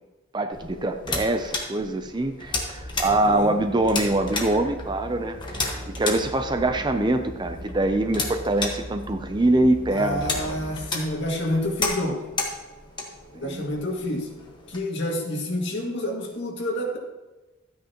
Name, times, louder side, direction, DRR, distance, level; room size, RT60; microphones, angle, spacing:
voice 1, 0.3-10.2 13.3-13.6, right 2 dB, 20° right, 7 dB, 0.5 m, -24 dB
sound 1, 0.5-14.8, left 3 dB, 20° left, 1.3 m, -34 dB
sound 2, 2.7-10.8, equal, 75° right, 3.6 m, -39 dB
voice 2, 3.0-3.6 9.9-12.3 13.3-14.3 14.7-17.0, left 1 dB, 55° left, -1 dB, 2.1 m, -28 dB
13.0 x 9.1 x 2.9 m, 1.1 s
head